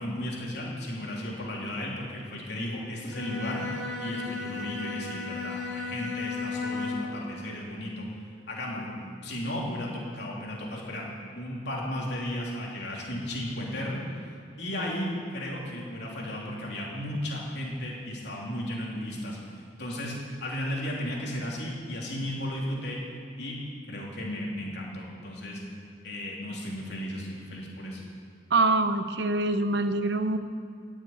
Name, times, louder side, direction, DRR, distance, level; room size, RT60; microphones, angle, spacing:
voice 1, 0.0-8.1 8.5-8.9 9.2-11.1 11.3-14.2 14.6-20.2 20.4-23.0 23.4-23.6 23.9-25.6 26.0-28.0, left 1 dB, 60° left, -3 dB, 3.5 m, -34 dB
Bowed string instrument, 3.0-7.2, left 4 dB, 80° left, 2.3 m, -34 dB
voice 2, 28.5-30.4, right 2 dB, 60° right, 9 dB, 0.8 m, -24 dB
16.5 x 7.4 x 9.2 m, 2.3 s
head